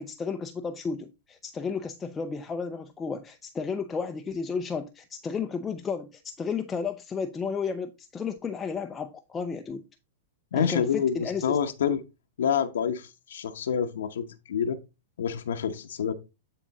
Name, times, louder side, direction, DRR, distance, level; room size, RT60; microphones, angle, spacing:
voice 1, 0.0-9.9 10.5-11.6, left 5 dB, 15° left, 0.5 m, -33 dB
voice 2, 10.5-12.0 12.4-14.8 15.2-16.1, left 7 dB, 80° left, 0.9 m, -27 dB
9.9 x 3.8 x 4.0 m
hypercardioid pair, 145°, 0 cm